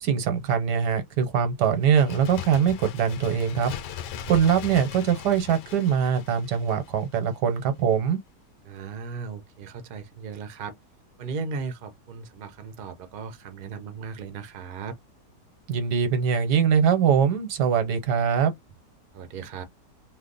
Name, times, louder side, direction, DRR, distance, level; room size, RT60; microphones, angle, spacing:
voice 1, 0.0-3.7 4.3-8.2 15.7-18.5, right 7 dB, 85° right, 1.5 m, -22 dB
Bird, 1.8-7.4 7.6-7.7, left 8 dB, 90° left, 1.3 m, -39 dB
voice 2, 8.6-10.7 11.2-14.9 19.1-19.6, right 5 dB, 45° right, 0.7 m, -36 dB
3.2 x 2.1 x 3.8 m
omnidirectional pair, 1.8 m